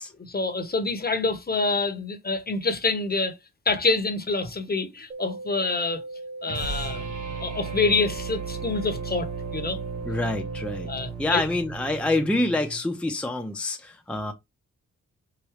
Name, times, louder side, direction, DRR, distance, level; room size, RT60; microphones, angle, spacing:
voice 1, 0.2-3.4 3.7-6.0 6.4-7.0 7.4-9.8 10.9-11.4, left 3 dB, 30° left, 1.1 m, -26 dB
sound 1, 5.1-11.1, right 2 dB, 35° right, 0.7 m, -38 dB
sound 2, 6.4-12.8, right 6 dB, 75° right, 2.9 m, -36 dB
voice 2, 10.0-10.9 11.2-14.3, left 2 dB, 5° left, 0.8 m, -27 dB
4.9 x 2.6 x 3.1 m
cardioid pair, 65°, 31 cm